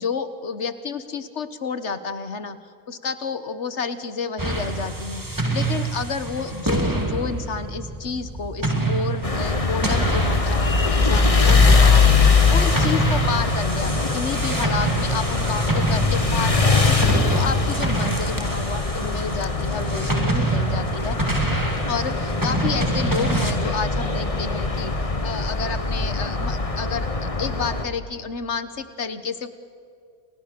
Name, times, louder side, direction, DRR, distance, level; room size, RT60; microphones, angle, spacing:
voice 1, 0.0-2.6 2.9-21.2 21.9-24.9 25.2-29.5, left 5 dB, 50° left, 12 dB, 1.4 m, -30 dB
sound 1, 4.4-23.5, right 3 dB, 10° right, 2.2 m, -26 dB
sound 2, 9.2-27.8, left 4 dB, 25° left, 1.4 m, -22 dB
29.5 x 27.5 x 6.8 m, 2.3 s
omnidirectional pair, 1.7 m